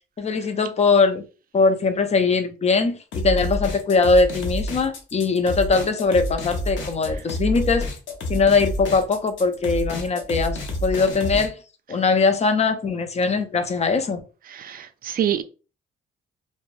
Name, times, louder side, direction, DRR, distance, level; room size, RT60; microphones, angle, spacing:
voice 1, 0.2-1.2 1.5-7.9 8.3-11.6 11.9-14.2, left 4 dB, 35° left, 0.5 m, -21 dB
sound 1, 3.1-11.5, equal, 70° left, 0.7 m, -29 dB
voice 2, 14.5-15.4, right 10 dB, 50° right, 0.4 m, -26 dB
2.9 x 2.1 x 2.5 m
cardioid pair, 90°, 20 cm